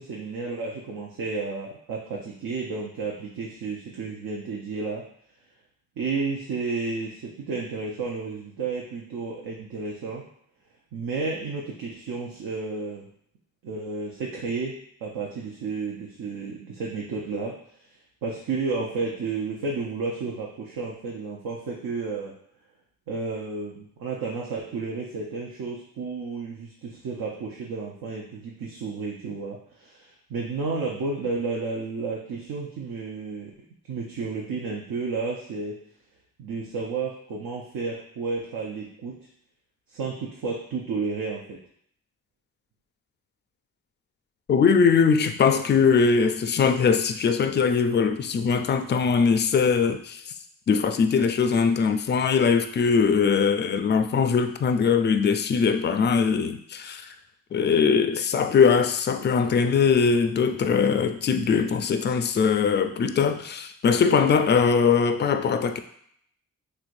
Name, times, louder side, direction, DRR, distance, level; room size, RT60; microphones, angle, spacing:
voice 1, 0.0-5.0 6.0-10.2 10.9-13.1 13.6-17.6 18.2-22.3 23.1-33.5 33.9-35.8 36.4-39.2 39.9-41.6, right 4 dB, 70° right, -2 dB, 0.7 m, -32 dB
voice 2, 44.5-50.3 50.7-57.2 57.5-65.8, left 6 dB, 30° left, 9 dB, 0.4 m, -21 dB
3.3 x 3.0 x 2.5 m, 0.66 s
supercardioid pair, 40°, 37 cm